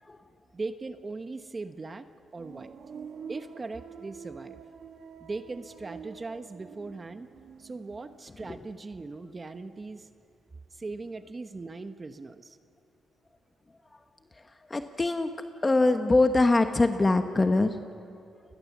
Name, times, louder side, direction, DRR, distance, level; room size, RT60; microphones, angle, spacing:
voice 1, 0.5-2.1 2.3-2.7 3.3-4.6 5.2-7.3 7.6-10.1 10.7-12.6, right 3 dB, 30° right, 10 dB, 1.0 m, -39 dB
sound 1, 2.4-9.2 9.5-10.2, right 6 dB, 65° right, 1.9 m, -47 dB
voice 2, 14.7-15.3 15.6-17.8, left 2 dB, 20° left, 7 dB, 1.1 m, -23 dB
29.5 x 20.5 x 7.3 m, 2.6 s
cardioid pair, 95°, 0 cm